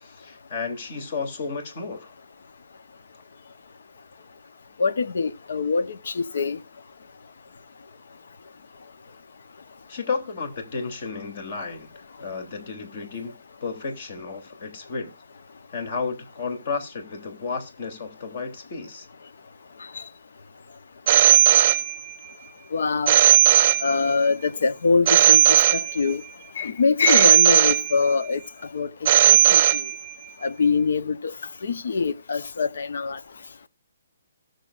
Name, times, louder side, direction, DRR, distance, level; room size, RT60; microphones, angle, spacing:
voice 1, 0.0-2.1 9.9-11.9 12.2-13.3 13.6-15.1 15.7-19.1, left 4 dB, 45° left, 3.1 m, -32 dB
voice 2, 4.8-6.6 19.9-20.0 22.7-23.1 23.8-26.2 26.6-28.4 28.7-28.9 29.3-29.8 30.4-31.3 31.6-33.2, left 4 dB, 70° left, 0.9 m, -24 dB
Telephone, 21.1-22.3 23.1-24.3 25.1-26.3 27.1-28.3 29.1-30.3, right 12 dB, 35° right, 0.5 m, -17 dB
17.5 x 6.6 x 2.5 m
hypercardioid pair, 155°, 0 cm